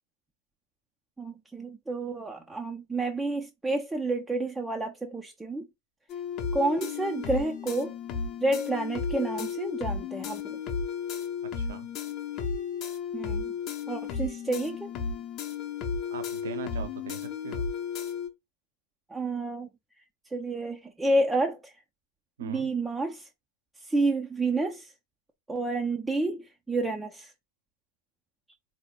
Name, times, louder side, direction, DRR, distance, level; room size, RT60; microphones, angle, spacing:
voice 1, 1.2-5.7 6.5-7.9 8.4-10.6 13.1-13.5 13.9-14.9 19.1-19.7 20.3-21.8 22.4-23.3 23.8-24.9 25.5-27.3, right 2 dB, 10° right, 0.5 m, -30 dB
sound 1, 6.1-18.3, left 6 dB, 35° left, 0.8 m, -34 dB
voice 2, 11.4-11.9 16.1-17.7 22.4-22.7, right 7 dB, 60° right, 0.7 m, -40 dB
4.0 x 2.8 x 2.9 m
figure-of-eight pair, 90°, 0 cm